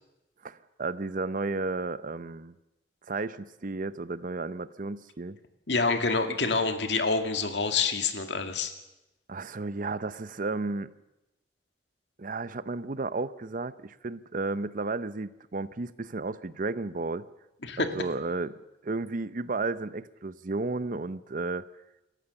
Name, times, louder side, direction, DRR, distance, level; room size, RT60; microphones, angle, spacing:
voice 1, 0.4-2.5 3.1-5.4 9.3-10.9 12.2-17.2 17.8-21.6, right 3 dB, 50° right, 15 dB, 0.7 m, -33 dB
voice 2, 5.7-8.7 17.6-17.9, left 4 dB, 80° left, 6 dB, 2.1 m, -27 dB
28.0 x 14.5 x 7.0 m, 0.96 s
head